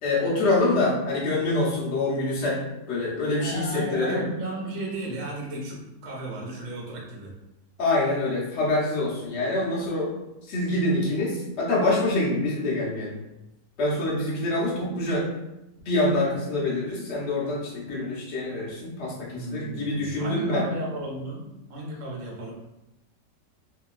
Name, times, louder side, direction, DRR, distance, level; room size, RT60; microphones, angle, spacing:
voice 1, 0.0-2.6 2.9-4.2 7.8-10.1 10.4-13.1 13.8-15.3 15.8-20.7, left 2 dB, 45° left, -6 dB, 0.9 m, -25 dB
voice 2, 3.4-7.3 19.3-22.5, right 1 dB, 60° right, -2 dB, 0.8 m, -35 dB
2.8 x 2.7 x 2.3 m, 0.92 s
omnidirectional pair, 1.9 m